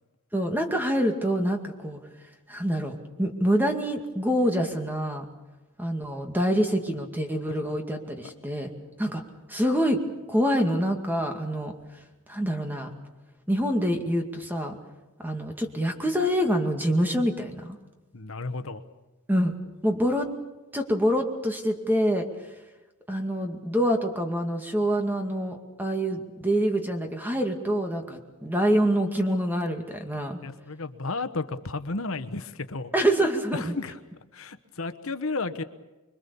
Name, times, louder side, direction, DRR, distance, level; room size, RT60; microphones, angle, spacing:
voice 1, 0.3-2.0 2.5-5.2 5.8-8.7 9.0-9.2 9.5-10.0 10.3-11.7 12.3-12.9 13.5-14.8 15.2-17.8 19.3-19.5 19.8-20.3 20.7-22.2 23.1-30.4 32.9-33.7, equal, 10° right, 4 dB, 2.3 m, -26 dB
voice 2, 18.1-18.8 30.4-32.9 33.5-34.0 34.3-35.6, left 3 dB, 65° left, 10 dB, 1.2 m, -33 dB
26.0 x 23.0 x 7.0 m, 1.1 s
head